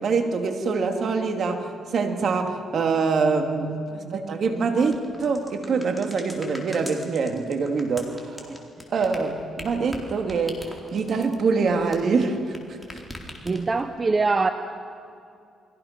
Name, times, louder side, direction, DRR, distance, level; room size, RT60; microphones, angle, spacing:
voice 1, 0.0-8.6 8.9-12.4, right 4 dB, 55° right, 4 dB, 2.7 m, -25 dB
sound 1, 4.9-12.6 12.8-13.9, equal, ahead, 4.2 m, -41 dB
voice 2, 13.4-14.5, right 3 dB, 30° right, 8 dB, 1.0 m, -23 dB
29.5 x 23.5 x 6.1 m, 2.4 s
cardioid pair, 90°, 0 cm